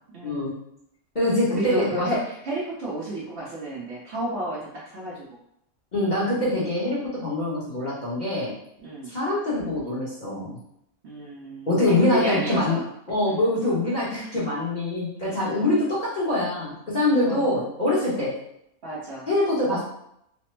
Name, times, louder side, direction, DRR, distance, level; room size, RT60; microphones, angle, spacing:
voice 1, 0.1-0.6 1.5-5.2 8.8-9.1 11.0-12.8 13.3-13.5 15.5-15.8 17.3-17.7 18.8-19.3, right 1 dB, 55° right, -6 dB, 0.9 m, -32 dB
voice 2, 1.1-2.1 5.9-8.5 9.1-10.6 11.7-12.8 13.1-18.3 19.3-19.8, left 1 dB, 35° left, -9 dB, 0.9 m, -24 dB
3.2 x 2.0 x 3.1 m, 0.77 s
omnidirectional pair, 1.6 m